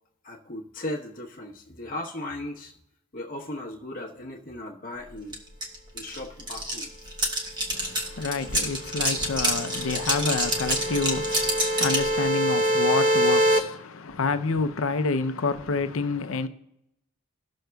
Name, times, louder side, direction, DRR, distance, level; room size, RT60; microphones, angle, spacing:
voice 1, 0.2-2.7 3.1-5.4 5.9-6.9, left 1 dB, 40° left, 1.1 m, -37 dB
sound 1, 5.3-5.4 5.6-12.1, right 1 dB, 20° right, 1.1 m, -27 dB
voice 2, 7.7-16.5, left 4 dB, 65° left, 0.6 m, -28 dB
sound 2, 8.7-13.6, equal, 40° right, 0.7 m, -25 dB
18.5 x 6.4 x 2.3 m
head